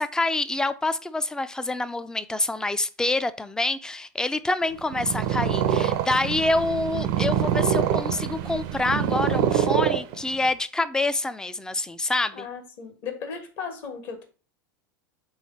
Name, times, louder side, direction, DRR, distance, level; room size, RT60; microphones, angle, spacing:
voice 1, 0.0-12.5, left 2 dB, 5° left, 0.3 m, -26 dB
Purr, 4.8-10.5, right 9 dB, 60° right, 0.5 m, -25 dB
voice 2, 12.3-14.2, left 6 dB, 55° left, 1.3 m, -36 dB
3.8 x 3.2 x 4.2 m
hypercardioid pair, 100°, 11 cm